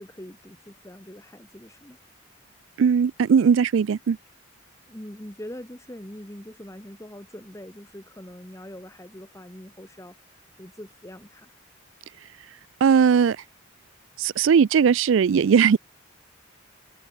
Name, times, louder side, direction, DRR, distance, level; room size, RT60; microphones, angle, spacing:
voice 1, 0.0-2.0 4.9-10.2 10.6-11.5, equal, 15° left, 2.1 m, -42 dB
voice 2, 2.8-4.2 12.8-13.4 14.2-15.8, right 6 dB, 70° right, 0.4 m, -18 dB
head